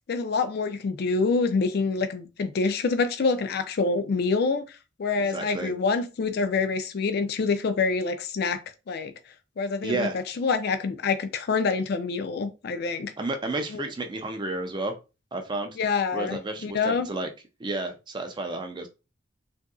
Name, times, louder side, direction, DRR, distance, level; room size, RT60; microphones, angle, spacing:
voice 1, 0.1-4.6 5.0-8.6 8.9-9.1 9.6-13.1 13.7-13.8 15.8-17.1, left 4 dB, 55° left, 0.4 m, -26 dB
voice 2, 5.2-5.7 9.8-10.2 13.2-14.9 15.3-15.7 16.1-17.3 17.6-18.9, right 2 dB, 25° right, 0.4 m, -31 dB
2.7 x 2.6 x 2.3 m
head